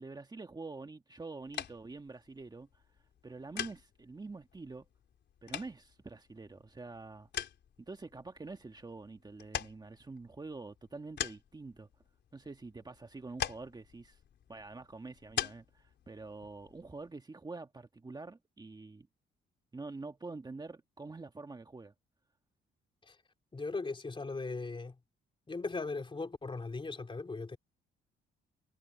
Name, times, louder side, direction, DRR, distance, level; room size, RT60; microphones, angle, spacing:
voice 1, 0.0-2.8 3.2-4.9 5.4-7.3 7.8-11.9 12.3-14.2 14.5-19.1 19.7-21.9, right 3 dB, 20° right, 1.5 m, -46 dB
sound 1, 1.4-17.1, left 9 dB, 65° left, 3.9 m, -44 dB
voice 2, 23.5-25.0 25.5-27.6, left 3 dB, 25° left, 3.2 m, -38 dB
cardioid pair, 90°, 20 cm